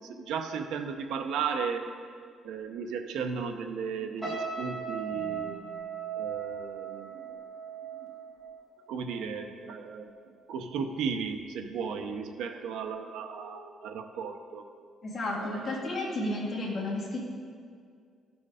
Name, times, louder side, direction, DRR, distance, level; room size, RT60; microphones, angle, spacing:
voice 1, 0.0-1.9 2.4-7.4 8.9-14.6 15.4-15.8, right 6 dB, 90° right, 6 dB, 0.6 m, -35 dB
sound 1, 4.2-9.5 9.8-10.1, right 6 dB, 10° right, 1.5 m, -38 dB
voice 2, 15.0-17.2, left 1 dB, 30° left, -4 dB, 1.9 m, -32 dB
12.5 x 4.4 x 5.0 m, 2.1 s
cardioid pair, 150°, 0 cm